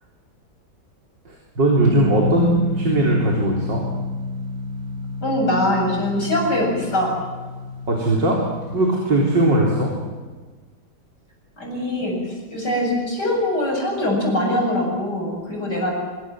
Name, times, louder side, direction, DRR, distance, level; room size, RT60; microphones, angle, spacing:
voice 1, 1.3-3.8 7.9-8.4 8.7-9.9, right 1 dB, 90° right, -1 dB, 4.5 m, -19 dB
sound 1, 1.8-8.7, left 1 dB, 20° left, 8.0 m, -29 dB
voice 2, 5.2-7.1 11.6-12.2 12.5-15.9, left 1 dB, 70° left, 0 dB, 8.7 m, -22 dB
26.0 x 25.0 x 7.8 m, 1.3 s
omnidirectional pair, 1.9 m